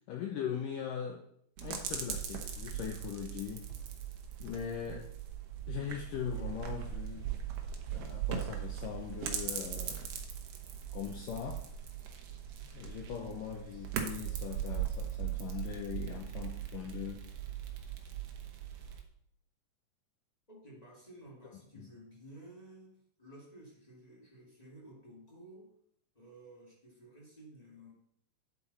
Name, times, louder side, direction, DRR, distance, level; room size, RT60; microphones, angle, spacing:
voice 1, 0.1-1.2 1.6-3.6 4.4-5.1 5.7-7.3 7.9-10.1 10.9-11.6 12.6-17.3 21.8-21.9, left 8 dB, 85° left, 2 dB, 1.9 m, -40 dB
sound 1, 1.6-19.0, right 9 dB, 90° right, 1.5 m, -39 dB
voice 2, 20.5-25.8 26.1-27.9, right 1 dB, 20° left, -4 dB, 1.2 m, -54 dB
9.4 x 8.0 x 4.2 m, 0.69 s
omnidirectional pair, 4.9 m